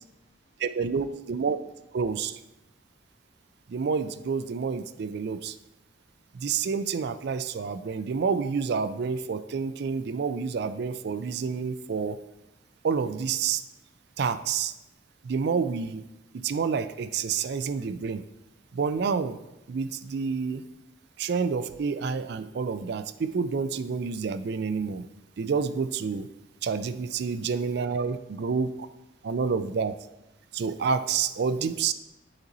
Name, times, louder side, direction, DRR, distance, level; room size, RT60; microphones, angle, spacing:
voice 1, 0.6-1.6 1.9-2.3 3.7-5.6 6.3-12.2 12.8-13.6 14.2-14.7 15.2-16.0 16.3-18.2 18.7-19.4 19.7-20.6 21.2-25.1 25.4-26.3 26.6-28.9 29.2-30.0 30.5-31.9, right 5 dB, 55° right, 12 dB, 0.4 m, -28 dB
11.0 x 4.0 x 4.0 m, 0.95 s
head